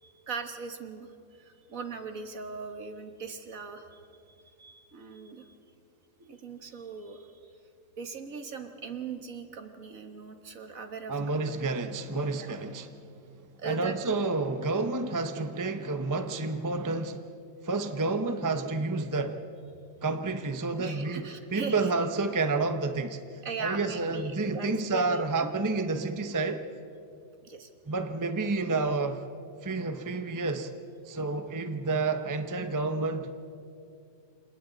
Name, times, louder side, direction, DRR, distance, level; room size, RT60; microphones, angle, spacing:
voice 1, 0.0-4.0 4.4-5.6 6.3-7.5 8.0-11.3 11.7-11.9 12.3-12.5 13.6-14.0 20.8-21.9 23.4-25.5 27.4-27.7, right 5 dB, 50° right, 1.8 m, -40 dB
voice 2, 11.1-13.0 13.6-17.2 17.6-19.4 20.0-26.6 27.9-29.2 29.6-30.7 31.0-33.3, right 3 dB, 25° right, 0.4 m, -30 dB
29.5 x 27.5 x 4.0 m
omnidirectional pair, 2.0 m